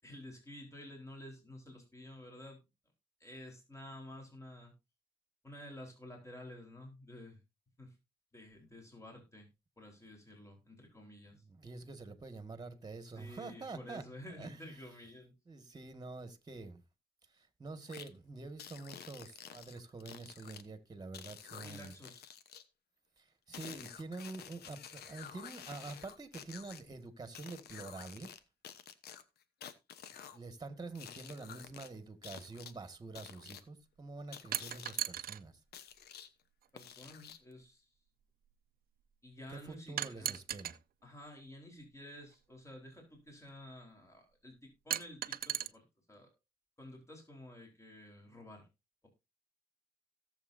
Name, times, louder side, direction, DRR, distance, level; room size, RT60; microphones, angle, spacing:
voice 1, 0.0-2.6 3.2-4.7 5.4-7.4 7.8-8.0 8.3-9.5 9.8-11.4 13.1-15.3 21.6-22.2 36.7-37.9 39.2-40.4 41.0-46.3 46.8-48.7, left 1 dB, 20° left, 4.2 m, -51 dB
voice 2, 11.5-14.0 14.4-14.8 15.5-16.8 17.3-21.9 23.2-28.3 30.3-35.6 39.5-40.7, right 3 dB, 25° right, 1.9 m, -47 dB
sound 1, 17.9-18.1 18.6-20.6 21.1-22.6 23.5-26.8 27.3-28.4 28.6-30.4 30.9-31.9 32.2-32.7 33.1-33.6 34.3-35.0 35.7-36.3 36.8-37.5, left 9 dB, 85° left, 1.1 m, -50 dB
sound 2, 34.5-35.4 36.6-36.7 40.0-40.8 42.2-42.3 44.9-45.7, right 11 dB, 70° right, 0.7 m, -36 dB
17.5 x 7.3 x 2.7 m
cardioid pair, 100°, 16 cm